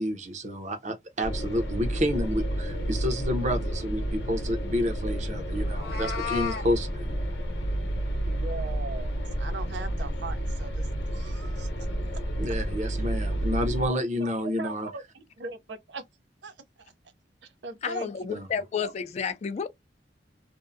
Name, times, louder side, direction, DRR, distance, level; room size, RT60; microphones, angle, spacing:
voice 1, 0.0-7.2 12.4-14.9 18.3-18.5, equal, 45° right, 0.7 m, -29 dB
sound 1, 1.2-13.9, right 1 dB, 80° left, 0.8 m, -30 dB
Meow, 5.6-6.7, left 7 dB, 60° left, 1.0 m, -33 dB
voice 2, 8.3-11.7 13.8-14.3 14.6-16.0 16.4-16.9 17.4-18.1 18.5-18.9, right 3 dB, 85° right, 0.6 m, -40 dB
voice 3, 17.8-19.7, left 6 dB, 40° left, 0.3 m, -31 dB
2.7 x 2.1 x 2.4 m
head